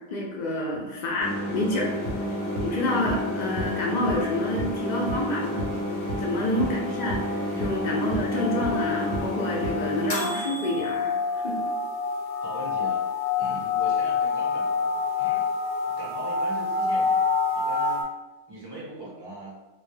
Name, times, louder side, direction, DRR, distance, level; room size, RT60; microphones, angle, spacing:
voice 1, 0.1-1.9 2.6-5.8 6.2-7.2 7.6-11.6, left 1 dB, 55° left, -2 dB, 0.5 m, -28 dB
sound 1, 1.2-10.9, left 1 dB, 30° left, 0.7 m, -31 dB
sound 2, 1.8-18.0, left 4 dB, 75° left, 0.8 m, -29 dB
sound 3, 2.1-2.2 2.6-2.7 3.1-3.2 3.6-3.7 4.1-4.2 4.6-4.7 5.1-5.2 5.6-5.7 6.1-6.2 6.6-6.7 7.1-7.2 7.6-7.7 8.1-8.2 8.6-8.7 9.1-9.2 9.6-9.7, right 2 dB, 70° right, 0.9 m, -31 dB
voice 2, 6.5-7.0 8.0-8.2 12.4-13.1 13.4-15.5 15.9-18.1 18.5-19.6, right 2 dB, 25° right, -6 dB, 0.6 m, -41 dB
2.2 x 2.1 x 3.1 m, 1.0 s
omnidirectional pair, 1.2 m